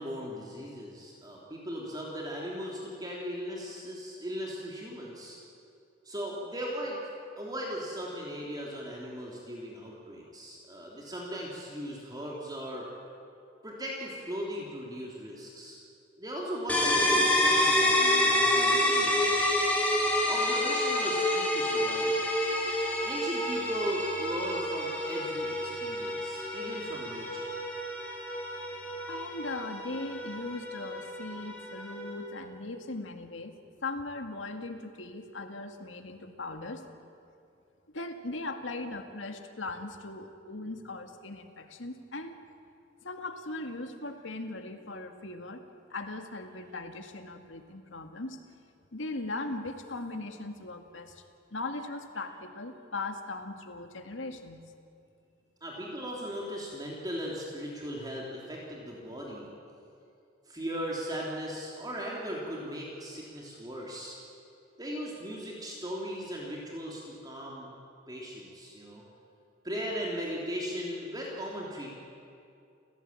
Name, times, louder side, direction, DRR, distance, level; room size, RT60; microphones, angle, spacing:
voice 1, 0.0-5.4 6.0-7.0 7.4-12.9 13.6-15.8 16.2-19.4 20.3-22.3 23.0-27.5 55.6-59.5 60.5-64.2 64.8-67.7 68.1-69.0 69.6-71.9, equal, 20° right, -3 dB, 3.4 m, -38 dB
sound 1, 16.7-32.3, left 1 dB, 10° left, 4.6 m, -28 dB
voice 2, 29.1-33.6 33.8-36.9 37.9-42.4 43.0-45.6 45.9-48.4 48.9-51.2 51.5-54.6, left 2 dB, 80° left, 6 dB, 2.0 m, -39 dB
30.0 x 16.0 x 9.0 m, 2.5 s
head